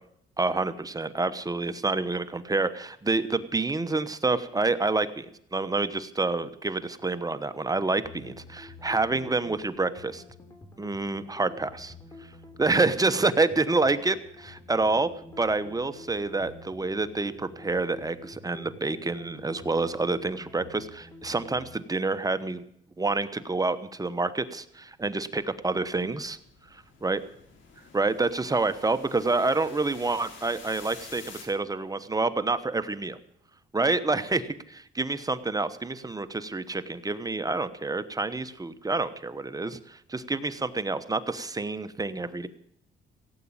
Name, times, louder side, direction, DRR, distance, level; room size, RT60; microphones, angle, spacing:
voice 1, 0.4-10.2 10.8-11.9 12.6-15.1 15.4-22.6 23.0-26.4 26.7-27.2 27.9-33.2 33.7-42.5, right 3 dB, 20° right, 11 dB, 1.1 m, -28 dB
sound 1, 8.0-21.8, left 2 dB, 15° left, 3.0 m, -48 dB
sound 2, 25.5-31.4, left 5 dB, 70° left, 3.9 m, -49 dB
16.5 x 8.4 x 8.7 m, 0.70 s
cardioid pair, 90°, 20 cm